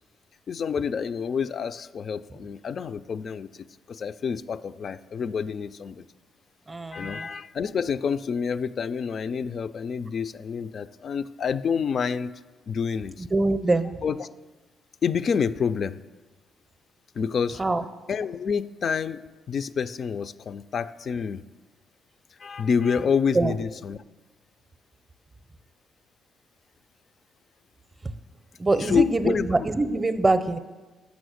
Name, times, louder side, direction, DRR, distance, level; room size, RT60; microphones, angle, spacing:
voice 1, 0.5-3.5 3.9-6.0 6.9-12.3 12.7-13.3 14.0-14.3 15.0-16.0 17.2-17.6 18.1-21.4 22.4-24.0 28.8-29.5, left 6 dB, 50° left, 13 dB, 0.3 m, -28 dB
voice 2, 6.7-7.3 13.2-14.0 17.6-17.8 23.3-23.5 28.6-30.6, right 2 dB, 20° right, 11 dB, 0.5 m, -24 dB
7.1 x 6.2 x 6.3 m, 1.2 s
cardioid pair, 90°, 0 cm